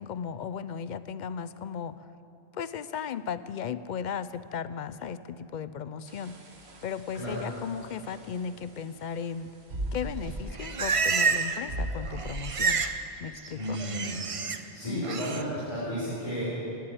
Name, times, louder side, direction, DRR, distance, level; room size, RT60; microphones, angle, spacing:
voice 1, 0.0-2.1 2.5-6.4 6.8-9.5 9.9-12.8 13.2-13.8 14.8-15.3, left 7 dB, 55° left, 14 dB, 0.6 m, -36 dB
sound 1, 6.1-12.7, right 1 dB, 80° right, 1.6 m, -39 dB
Livestock farm animals working animals, 10.2-11.7 11.9-13.0 13.3-14.6 15.0-15.4, right 5 dB, 35° right, 0.6 m, -29 dB
voice 2, 13.5-14.2 14.7-16.6, equal, 30° left, -9 dB, 3.9 m, -33 dB
17.5 x 8.4 x 9.1 m, 2.8 s
omnidirectional pair, 1.1 m